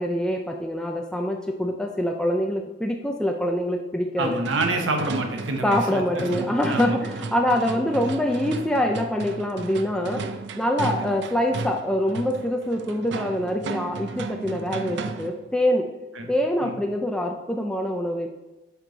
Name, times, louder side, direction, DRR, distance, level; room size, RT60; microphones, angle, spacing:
voice 1, 0.0-4.4 5.6-10.3 10.6-15.9 16.3-18.3, left 1 dB, 5° left, 2 dB, 0.4 m, -25 dB
sound 1, 4.2-15.5, right 3 dB, 65° right, 0.5 m, -34 dB
voice 2, 4.2-6.9 11.0-11.2 16.2-16.3 16.6-16.7, right 2 dB, 85° right, 4 dB, 1.0 m, -28 dB
7.9 x 4.6 x 3.9 m, 1.1 s
head